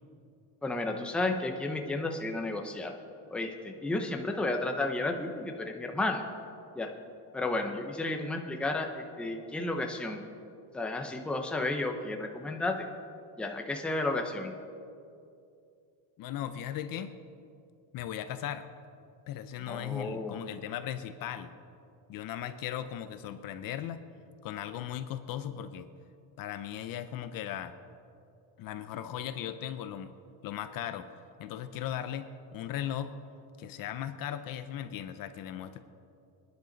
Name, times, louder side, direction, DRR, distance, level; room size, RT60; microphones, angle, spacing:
voice 1, 0.6-2.9 3.3-6.2 6.7-6.9 7.3-10.2 10.7-12.9 13.4-14.5 19.7-20.4, left 2 dB, ahead, 3 dB, 0.7 m, -32 dB
voice 2, 16.2-17.1 17.9-18.7 19.3-21.5 22.1-24.0 24.4-25.9 26.4-27.7 28.6-30.1 30.4-31.1 31.4-33.1 33.6-35.8, left 10 dB, 45° left, 10 dB, 0.7 m, -37 dB
24.5 x 10.5 x 4.0 m, 2.5 s
cardioid pair, 165°, 47 cm